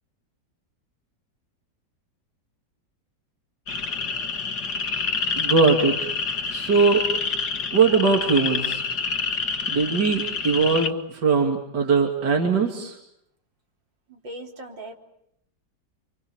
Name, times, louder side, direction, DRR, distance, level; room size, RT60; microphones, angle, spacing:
sound 1, 3.7-10.9, left 5 dB, 60° left, 2.3 m, -27 dB
voice 1, 5.4-6.1 6.5-7.0 7.7-8.8 9.7-10.9 11.2-13.0, right 4 dB, 65° right, 2 dB, 3.3 m, -20 dB
voice 2, 14.1-14.9, right 1 dB, 80° right, 2 dB, 4.3 m, -39 dB
29.5 x 26.5 x 7.3 m, 0.77 s
omnidirectional pair, 2.0 m